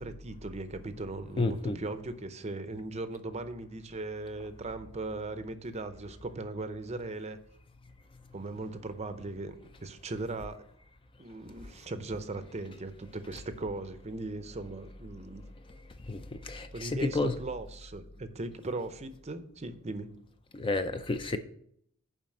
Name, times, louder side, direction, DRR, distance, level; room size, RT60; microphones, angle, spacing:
voice 1, 0.0-7.4 8.3-10.6 11.2-15.4 16.7-20.1, right 2 dB, 30° right, 0.6 m, -38 dB
voice 2, 1.4-1.8 15.7-17.4 20.5-21.4, left 3 dB, 25° left, 0.4 m, -31 dB
7.3 x 5.1 x 6.4 m
head